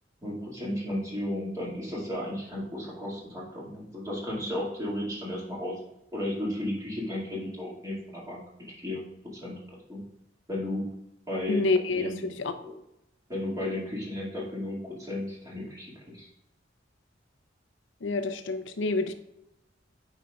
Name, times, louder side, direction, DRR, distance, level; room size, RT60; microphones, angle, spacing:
voice 1, 0.2-5.8 6.1-8.4 8.8-9.0 9.3-9.5 9.9-10.0 10.5-10.9 11.3-11.6 11.9-12.2 12.6-12.7 13.3-16.3, left 1 dB, 20° right, -5 dB, 2.1 m, -34 dB
voice 2, 11.5-12.5 18.0-19.1, left 3 dB, 80° left, 9 dB, 0.6 m, -28 dB
8.5 x 5.1 x 2.3 m, 0.85 s
head